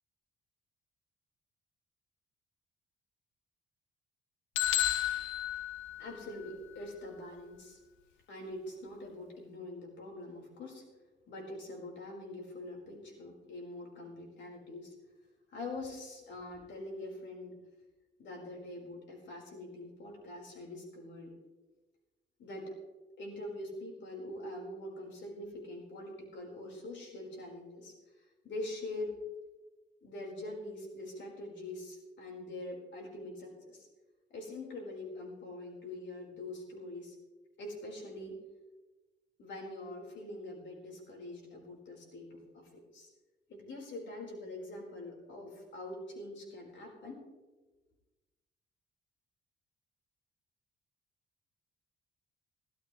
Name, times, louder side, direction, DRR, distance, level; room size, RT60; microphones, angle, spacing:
sound 1, 4.6-6.5, left 13 dB, 85° left, 0.8 m, -32 dB
voice 1, 6.0-7.8 8.3-10.8 11.3-14.9 15.5-17.5 18.2-21.3 22.4-22.7 23.2-29.1 30.0-33.9 34.3-37.1 37.6-38.4 39.4-43.1 43.5-47.2, left 1 dB, 70° left, -1 dB, 4.7 m, -44 dB
20.0 x 12.5 x 3.3 m, 1.2 s
cardioid pair, 90°, 20 cm